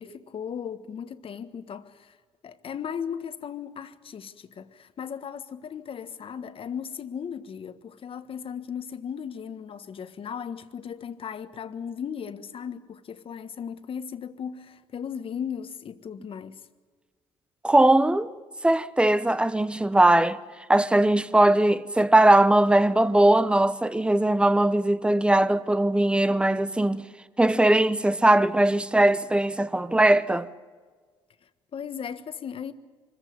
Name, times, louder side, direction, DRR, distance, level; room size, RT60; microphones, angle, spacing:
voice 1, 0.0-2.2 2.4-16.7 31.7-32.7, left 7 dB, 50° left, 1.5 m, -36 dB
voice 2, 17.6-18.3 18.6-20.4 20.7-27.1 27.4-30.5, right 1 dB, 10° right, 1.1 m, -20 dB
25.0 x 15.0 x 9.5 m
supercardioid pair, 75°, 12 cm